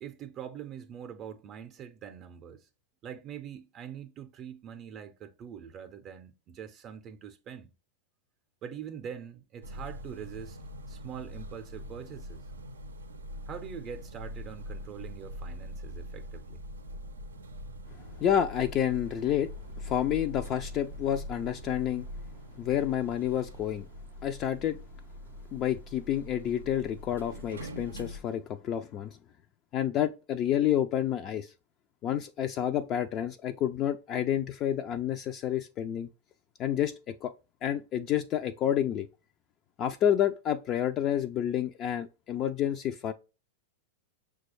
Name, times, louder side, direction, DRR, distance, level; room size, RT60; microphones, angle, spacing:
voice 1, 0.0-2.7 3.0-7.7 8.6-10.6 10.9-12.4 13.5-16.6, right 8 dB, 40° right, 0.5 m, -43 dB
sound 1, 9.6-28.2, equal, 90° right, 0.5 m, -43 dB
voice 2, 18.2-19.5 19.8-22.1 22.6-23.9 24.2-24.8 25.5-29.1 29.7-31.5 32.0-36.1 36.6-36.9 37.2-37.3 37.6-39.1 39.8-43.1, left 10 dB, 40° left, 0.3 m, -29 dB
6.0 x 2.2 x 3.0 m
hypercardioid pair, 100°, 0 cm